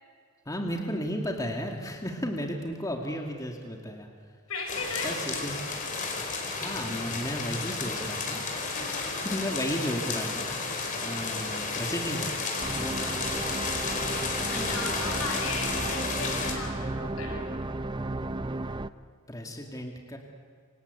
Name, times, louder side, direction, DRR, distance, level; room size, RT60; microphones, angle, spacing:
voice 1, 0.5-4.1 5.0-5.6 6.6-8.4 8.9-12.3 12.7-13.2 14.5-15.2 19.3-20.2, equal, 15° left, 1 dB, 2.3 m, -34 dB
voice 2, 4.5-5.4 8.7-9.3 13.0-13.4 14.5-17.5, left 3 dB, 75° left, 2 dB, 7.3 m, -37 dB
sound 1, 4.7-16.5, left 4 dB, 35° left, 4.7 m, -32 dB
sound 2, 12.6-18.9, right 2 dB, 20° right, 0.7 m, -34 dB
28.0 x 25.5 x 8.4 m, 2.1 s
head